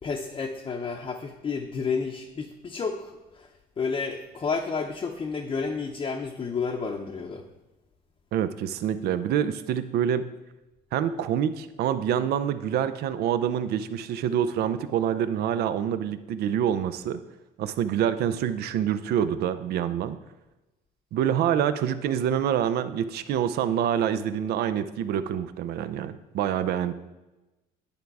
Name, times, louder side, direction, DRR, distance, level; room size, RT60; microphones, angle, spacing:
voice 1, 0.0-3.5 3.8-7.5, left 5 dB, 30° left, 1 dB, 0.6 m, -31 dB
voice 2, 8.3-10.3 10.9-17.2 17.6-20.2 21.1-26.9, right 9 dB, 70° right, 12 dB, 0.5 m, -26 dB
10.0 x 3.5 x 4.7 m, 1.0 s
cardioid pair, 110°, 17 cm